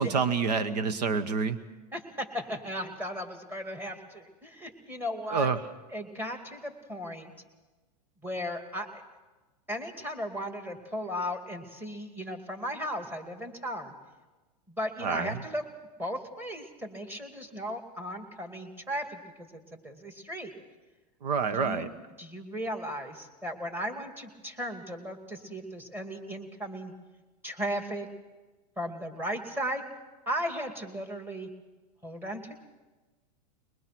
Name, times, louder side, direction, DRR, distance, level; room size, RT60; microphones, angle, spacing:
voice 1, 0.0-1.6 5.3-5.6 15.0-15.3 21.2-21.9, right 5 dB, 80° right, 12 dB, 1.2 m, -27 dB
voice 2, 1.9-5.5 5.9-7.3 8.2-9.0 9.7-13.9 14.7-15.6 16.0-20.5 21.5-26.9 27.4-28.1 28.8-29.8 30.3-31.5 32.0-32.6, equal, 10° right, 5 dB, 2.4 m, -36 dB
22.0 x 21.0 x 6.0 m, 1.2 s
hypercardioid pair, 125°, 20 cm